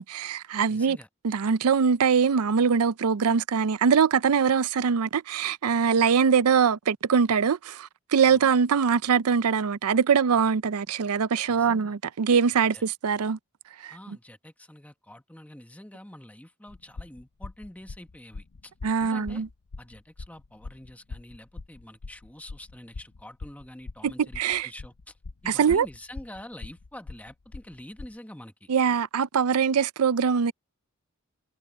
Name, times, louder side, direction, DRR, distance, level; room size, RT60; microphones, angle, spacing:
voice 1, 0.0-1.0 1.2-13.4 13.8-13.9 18.8-19.5 24.0-24.7 25.5-25.9 28.7-30.5, right 6 dB, 85° right, 0.5 m, -23 dB
voice 2, 0.7-1.1 5.9-6.1 8.3-8.4 11.5-11.9 12.7-12.8 13.9-18.7 19.0-19.4 19.8-25.1 25.4-28.7, left 1 dB, 5° left, 1.4 m, -46 dB
sound 1, 16.7-28.1, left 3 dB, 85° left, 0.7 m, -42 dB
head